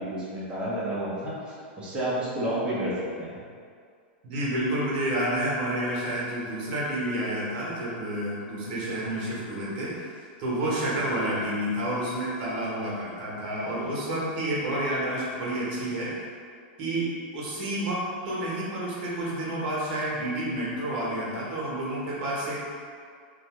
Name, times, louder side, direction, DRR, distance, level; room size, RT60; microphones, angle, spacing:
voice 1, 0.0-3.4, right 1 dB, 15° right, -8 dB, 0.8 m, -30 dB
voice 2, 4.2-16.2 16.8-22.7, right 1 dB, 55° right, -6 dB, 1.0 m, -30 dB
2.6 x 2.2 x 3.1 m, 2.2 s
supercardioid pair, 140°, 6 cm